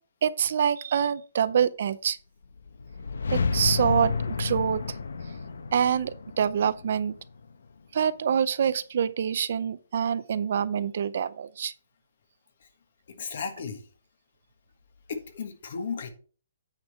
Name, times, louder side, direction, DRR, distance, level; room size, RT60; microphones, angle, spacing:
voice 1, 0.2-2.2 3.3-4.8 5.7-7.2 7.9-11.7, right 8 dB, 45° right, 0.5 m, -26 dB
sound 1, 2.5-7.7, left 5 dB, 85° left, 1.0 m, -31 dB
voice 2, 13.1-13.8 15.1-16.1, left 5 dB, 45° left, 1.5 m, -34 dB
9.0 x 5.2 x 4.3 m
hypercardioid pair, 175°, 0 cm